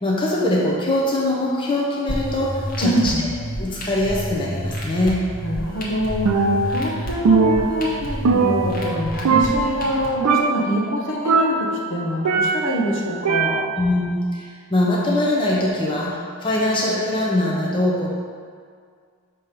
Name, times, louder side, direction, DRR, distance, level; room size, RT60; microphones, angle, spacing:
voice 1, 0.0-2.5 2.8-3.1 3.6-5.2 13.8-18.1, left 1 dB, 25° left, -5 dB, 0.7 m, -22 dB
sound 1, 2.1-10.1, right 1 dB, 40° left, 1.0 m, -30 dB
voice 2, 2.8-3.2 5.4-13.7, equal, 60° left, -1 dB, 0.8 m, -25 dB
Percussion, 6.3-6.9 7.3-9.0 9.3-10.0 10.3-10.8 11.3-12.8 13.3-13.9, right 4 dB, 90° right, 0.4 m, -20 dB
6.4 x 2.9 x 5.0 m, 2.1 s
head